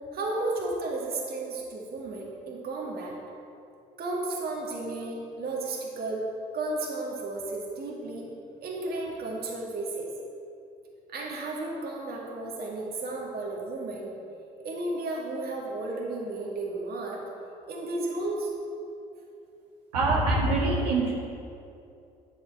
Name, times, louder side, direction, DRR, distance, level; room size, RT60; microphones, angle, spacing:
voice 1, 0.1-3.2 4.0-6.2 6.5-8.3 8.6-10.1 11.1-14.1 14.6-17.2 17.7-18.5, right 2 dB, 50° right, -2 dB, 1.9 m, -33 dB
voice 2, 19.9-21.1, right 2 dB, 85° right, -5 dB, 1.8 m, -24 dB
9.7 x 5.7 x 4.8 m, 2.6 s
hypercardioid pair, 60°, 20 cm